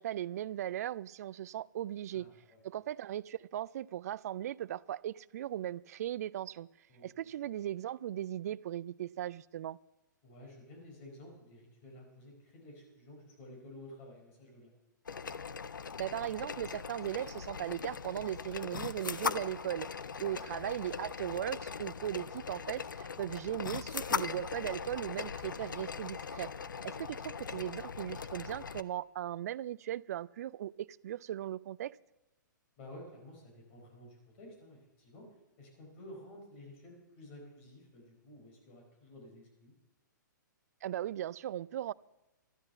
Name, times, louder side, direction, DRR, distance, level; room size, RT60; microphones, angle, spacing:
voice 1, 0.0-2.3 2.6-6.7 7.0-9.8 16.0-19.9 20.2-26.5 26.8-32.0 40.8-41.9, right 12 dB, 50° right, 0.4 m, -38 dB
voice 2, 2.1-2.6 6.9-7.1 10.2-14.7 20.1-20.4 32.8-35.3 35.6-39.7, left 1 dB, 40° left, 4.6 m, -52 dB
sound 1, 15.1-28.8, left 6 dB, 80° left, 0.6 m, -40 dB
13.0 x 9.8 x 6.7 m
figure-of-eight pair, 125°, 11 cm